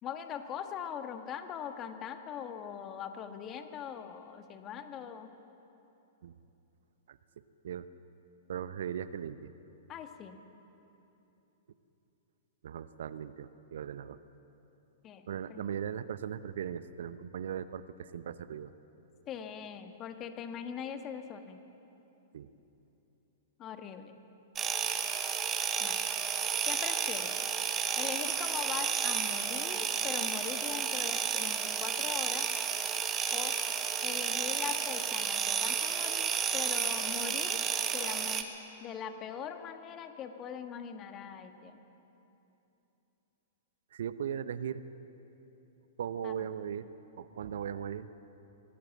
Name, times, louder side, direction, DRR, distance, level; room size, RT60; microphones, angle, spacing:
voice 1, 0.0-5.3 9.9-10.4 15.0-15.2 15.5-15.6 19.3-21.6 23.6-24.2 25.8-26.0 26.6-27.3 28.0-32.5 33.3-33.6 34.0-37.7 37.9-38.5 38.8-41.8 46.2-46.5, left 8 dB, 30° left, 7 dB, 1.6 m, -41 dB
voice 2, 8.5-9.5 12.6-14.2 15.3-18.7 22.3-22.5 43.9-44.8 46.0-46.8 47.2-48.1, right 8 dB, 60° right, 14 dB, 0.8 m, -38 dB
sound 1, 24.6-38.4, right 7 dB, 25° right, 1.5 m, -32 dB
23.5 x 17.0 x 7.3 m, 3.0 s
figure-of-eight pair, 105°, 0 cm